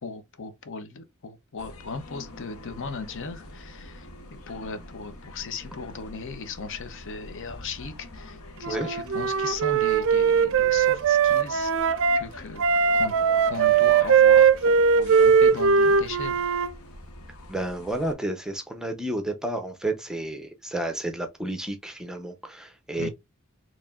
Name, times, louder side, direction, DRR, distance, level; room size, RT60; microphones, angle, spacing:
voice 1, 0.0-4.1 4.5-11.7 12.1-12.6 12.9-13.1 13.5-16.4 23.0-23.1, left 4 dB, 60° left, 0.6 m, -37 dB
sound 1, 1.6-18.1, left 1 dB, 75° left, 1.0 m, -45 dB
Wind instrument woodwind instrument, 8.6-12.2 12.6-16.7, right 6 dB, 60° right, 0.4 m, -20 dB
voice 2, 17.5-23.1, right 1 dB, 5° right, 0.6 m, -31 dB
4.6 x 3.0 x 2.4 m
head